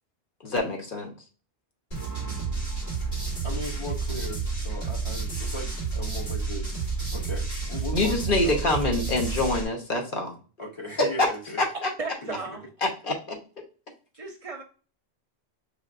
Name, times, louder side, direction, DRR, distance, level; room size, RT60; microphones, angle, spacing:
voice 1, 0.4-1.1 7.9-10.4 11.0-11.3 11.6-11.9 12.8-13.4, left 2 dB, 55° left, 1 dB, 1.1 m, -25 dB
sound 1, 1.9-9.6, right 4 dB, 80° left, 2.6 m, -30 dB
voice 2, 3.4-6.7 7.1-8.7 10.6-11.6 12.2-12.4, left 1 dB, 30° left, 1 dB, 0.7 m, -38 dB
voice 3, 12.0-12.7 14.1-14.6, right 4 dB, 40° right, 5 dB, 0.6 m, -35 dB
5.3 x 3.2 x 2.5 m, 0.37 s
omnidirectional pair, 1.1 m